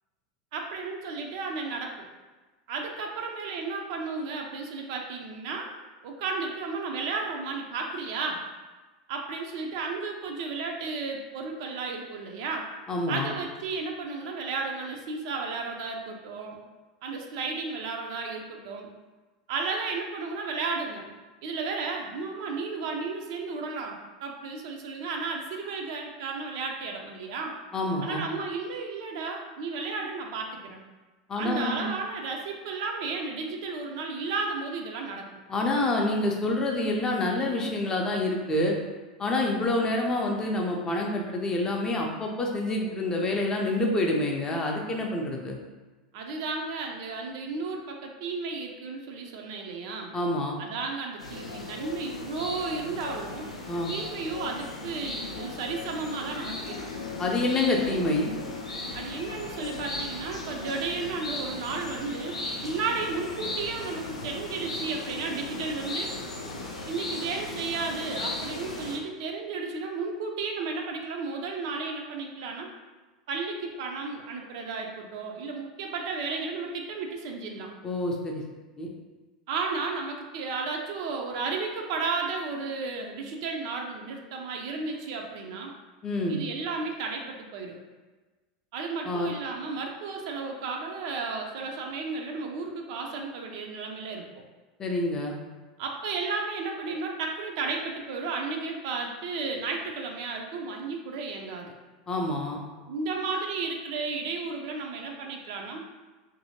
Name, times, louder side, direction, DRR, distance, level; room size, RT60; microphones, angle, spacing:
voice 1, 0.5-2.1 2.7-5.7 6.0-8.4 9.1-12.7 13.1-16.6 17.0-18.9 19.5-21.0 21.4-27.5 28.0-30.8 31.4-35.3 46.1-50.1 50.6-53.5 53.9-57.0 57.8-58.0 58.9-66.1 66.9-72.7 73.3-77.7 79.5-85.7 86.3-87.8 88.7-94.3 95.8-101.7 102.8-105.8, right 4 dB, 55° right, 2 dB, 0.4 m, -33 dB
voice 2, 12.9-13.3 27.7-28.2 31.3-31.9 35.5-38.7 39.2-45.6 50.1-50.6 53.7-53.9 57.2-58.3 77.8-78.4 78.8-78.9 86.0-86.4 89.1-89.3 94.8-95.4 102.1-102.6, left 2 dB, 20° left, 0 dB, 0.5 m, -27 dB
sound 1, 51.2-69.0, left 2 dB, 80° left, 0.4 m, -37 dB
2.7 x 2.6 x 2.7 m, 1.2 s
figure-of-eight pair, 85°, 3 cm